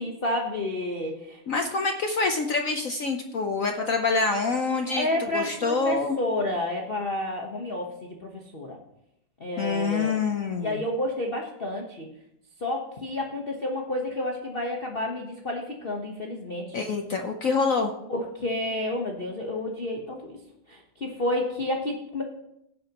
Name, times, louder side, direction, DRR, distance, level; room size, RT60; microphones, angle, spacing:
voice 1, 0.0-1.4 4.8-8.8 9.4-10.2 10.6-12.1 12.6-16.8 18.1-20.3 20.7-22.2, left 1 dB, 35° left, 1 dB, 1.1 m, -30 dB
voice 2, 1.5-5.1 5.3-6.2 9.6-10.8 16.7-17.9, left 4 dB, 60° left, 4 dB, 0.9 m, -26 dB
16.5 x 9.3 x 2.9 m, 0.80 s
omnidirectional pair, 2.2 m